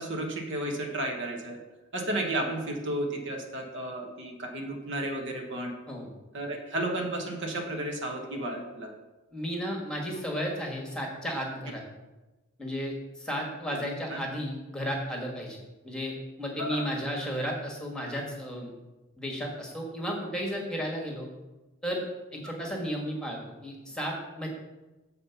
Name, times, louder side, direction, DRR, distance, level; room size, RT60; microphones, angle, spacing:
voice 1, 0.0-1.6 1.9-5.7 6.3-8.9 14.1-14.2 16.6-16.9, right 1 dB, 60° right, 2 dB, 1.1 m, -33 dB
voice 2, 9.3-11.8 12.6-15.6 15.8-18.7 19.2-21.3 21.8-22.0 22.3-24.5, equal, 5° left, -1 dB, 1.5 m, -33 dB
7.3 x 4.2 x 6.9 m, 1.1 s
head